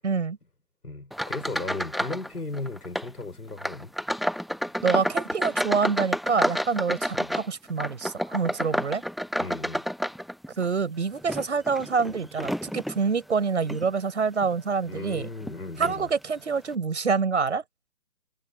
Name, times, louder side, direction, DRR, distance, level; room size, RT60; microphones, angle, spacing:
voice 1, 0.0-0.4 4.8-9.0 10.6-15.3 15.8-17.6, right 5 dB, 45° right, 6.3 m, -26 dB
voice 2, 0.8-3.9 7.2-7.3 9.4-9.9 14.8-16.1, left 3 dB, 70° left, 7.9 m, -36 dB
sound 1, 1.1-2.3 2.5-3.1 3.6-10.7 11.2-13.0 13.6-13.9 14.4-14.5 15.4-15.5 15.8-16.0, equal, ahead, 0.4 m, -30 dB
figure-of-eight pair, 150°, 49 cm